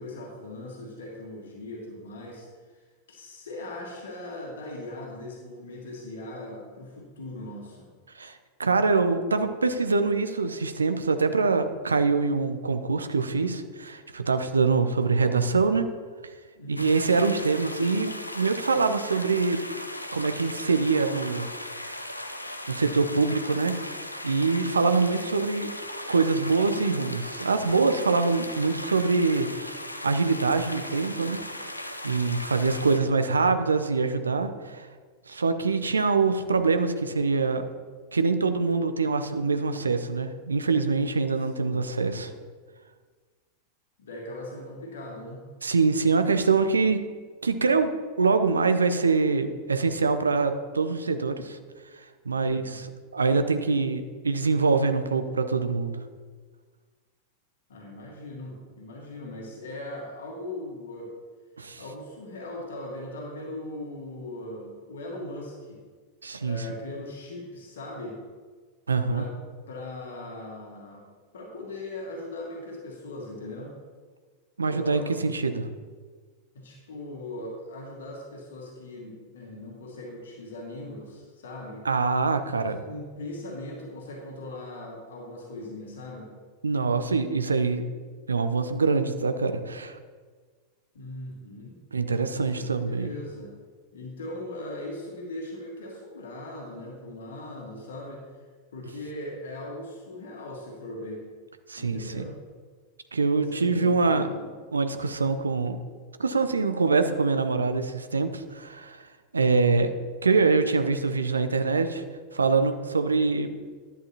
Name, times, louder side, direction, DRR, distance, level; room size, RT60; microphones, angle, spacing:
voice 1, 0.0-2.8 3.1-7.9 16.5-16.9 41.5-41.9 44.0-45.5 52.3-52.8 57.7-61.1 61.8-65.8 66.4-68.2 69.1-69.3 69.7-71.0 71.3-73.7 74.6-75.1 76.5-81.8 82.4-86.3 90.9-91.7 92.3-93.5 93.9-98.2 98.7-101.2 101.8-102.4 103.3-104.4 109.6-110.0, left 1 dB, 65° left, 0 dB, 1.6 m, -39 dB
voice 2, 8.2-15.9 16.7-19.6 20.1-21.5 22.4-25.7 26.1-31.4 32.0-34.9 35.3-37.7 38.1-42.3 45.6-47.0 47.4-47.9 48.2-51.6 52.3-56.0 61.6-61.8 66.2-66.6 68.9-69.2 74.6-75.7 81.8-82.8 86.6-87.8 88.3-90.0 91.9-93.1 101.7-102.2 103.1-104.3 104.7-105.8 106.2-109.0 109.3-109.9 110.2-112.0 112.3-113.5, right 4 dB, 75° right, 9 dB, 0.6 m, -24 dB
sound 1, 16.8-33.0, left 1 dB, 85° left, 0.5 m, -38 dB
11.0 x 8.3 x 2.9 m, 1.5 s
figure-of-eight pair, 90°, 0 cm